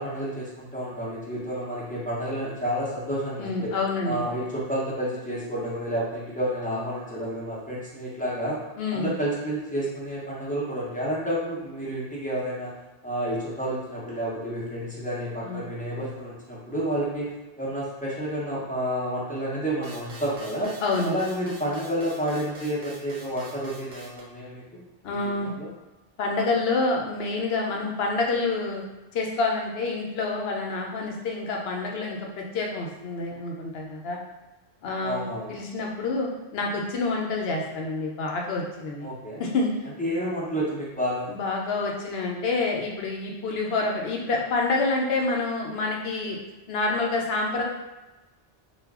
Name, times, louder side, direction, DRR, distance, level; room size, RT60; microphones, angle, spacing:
voice 1, 0.0-3.7 4.0-8.6 8.9-12.7 13.0-20.7 21.0-24.8 25.1-25.7 35.0-35.5 39.0-39.4 40.0-41.3, equal, 10° left, -7 dB, 0.6 m, -30 dB
voice 2, 3.4-4.2 8.8-9.1 15.4-15.7 20.8-21.2 25.0-25.5 26.2-28.8 29.1-34.2 34.8-39.1 39.4-39.7 41.3-46.4 46.7-47.6, left 3 dB, 70° left, 0 dB, 0.8 m, -27 dB
sound 1, 19.8-24.2, right 3 dB, 85° right, 0.9 m, -45 dB
2.3 x 2.0 x 3.5 m, 1.1 s
omnidirectional pair, 1.1 m